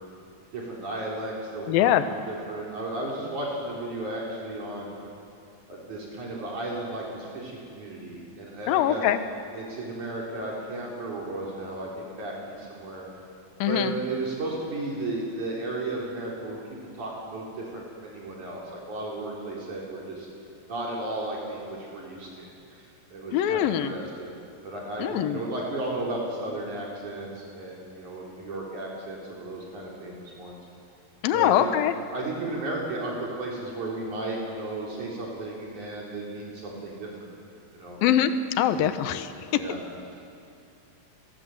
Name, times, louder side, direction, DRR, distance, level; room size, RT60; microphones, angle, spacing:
voice 1, 0.5-4.9 5.7-9.0 9.5-13.1 13.7-16.6 17.0-18.6 18.9-20.3 20.7-22.8 23.1-24.3 24.6-30.6 31.3-31.7 32.1-37.1 37.7-38.0 38.7-38.9 39.5-39.8, right 2 dB, 55° right, -4 dB, 5.4 m, -34 dB
voice 2, 1.7-2.0 8.7-9.2 13.6-13.9 23.3-23.9 25.0-25.4 31.2-31.9 38.0-38.3 38.6-39.3, left 11 dB, 85° left, 10 dB, 2.8 m, -23 dB
29.5 x 23.0 x 7.9 m, 2.5 s
omnidirectional pair, 4.1 m